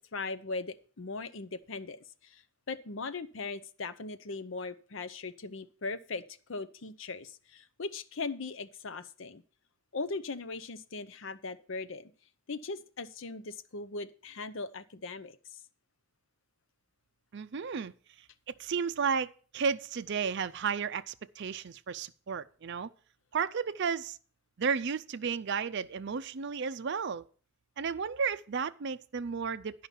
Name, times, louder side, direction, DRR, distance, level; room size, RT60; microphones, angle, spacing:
voice 1, 0.0-2.4 2.7-6.2 6.5-9.4 9.9-12.1 12.5-15.6, left 3 dB, 65° left, 0.7 m, -39 dB
voice 2, 17.3-17.9 18.6-19.3 19.5-22.9 23.3-24.2 24.6-27.2 27.8-29.9, right 6 dB, 55° right, 0.5 m, -33 dB
10.0 x 5.6 x 7.2 m
head